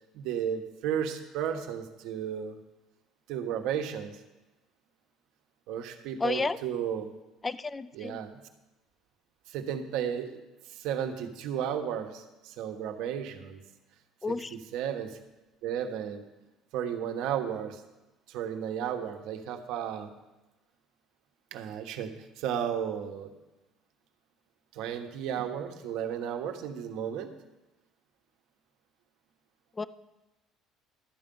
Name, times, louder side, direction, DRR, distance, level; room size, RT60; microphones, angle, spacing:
voice 1, 0.1-2.5 3.3-4.1 5.7-7.1 7.9-8.4 9.5-10.4 10.7-13.6 14.3-15.2 15.6-16.2 16.7-17.8 18.3-20.1 21.5-22.1 22.4-23.3 24.7-27.3, right 9 dB, 75° right, 5 dB, 1.2 m, -33 dB
voice 2, 6.2-6.6 7.4-8.2 14.2-14.5 29.8-29.9, left 3 dB, 15° left, 16 dB, 0.4 m, -31 dB
12.5 x 8.8 x 5.4 m, 1.1 s
cardioid pair, 145°, 0 cm